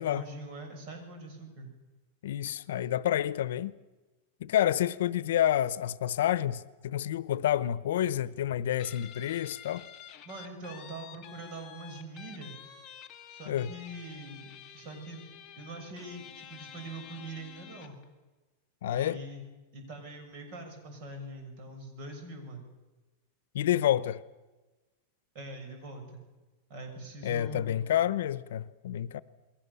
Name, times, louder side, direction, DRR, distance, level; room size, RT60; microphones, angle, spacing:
voice 1, 0.0-1.7 10.2-12.5 13.3-15.3 15.5-17.9 18.8-19.4 19.7-22.7 25.3-26.2 26.7-27.8, right 2 dB, 40° right, 6.8 m, -43 dB
voice 2, 2.2-3.7 4.4-9.9 13.5-13.7 18.8-19.2 23.5-24.2 27.2-29.2, left 11 dB, 75° left, 0.9 m, -29 dB
Guitar, 8.8-18.0, left 9 dB, 20° left, 2.2 m, -50 dB
29.0 x 21.5 x 7.0 m
supercardioid pair, 170°, 0 cm